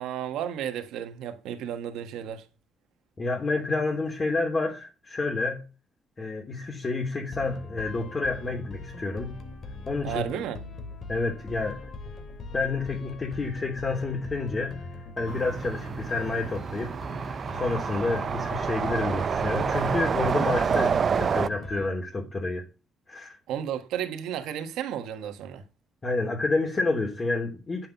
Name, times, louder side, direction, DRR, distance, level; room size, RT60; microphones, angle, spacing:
voice 1, 0.0-2.4 10.0-10.6 23.5-25.6, right 9 dB, 90° right, 1.3 m, -33 dB
voice 2, 3.2-5.6 6.2-9.4 9.9-10.2 11.1-11.8 12.5-22.6 23.1-23.4 26.0-27.9, left 3 dB, 35° left, 3.2 m, -29 dB
sound 1, 7.3-21.9, left 3 dB, 55° left, 2.7 m, -41 dB
sound 2, 15.3-21.5, right 6 dB, 50° right, 0.4 m, -28 dB
9.3 x 7.5 x 5.8 m
cardioid pair, 90°, 0 cm